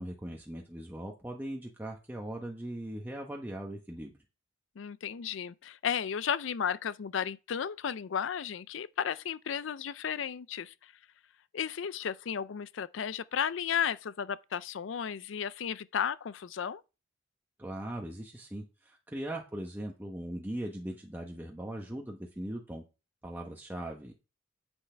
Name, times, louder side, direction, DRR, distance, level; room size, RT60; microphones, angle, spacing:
voice 1, 0.0-4.1 17.6-22.8 23.2-24.1, right 1 dB, 10° right, 1.0 m, -39 dB
voice 2, 4.8-10.7 11.5-16.8, left 8 dB, 65° left, 0.4 m, -34 dB
9.7 x 8.1 x 3.3 m
head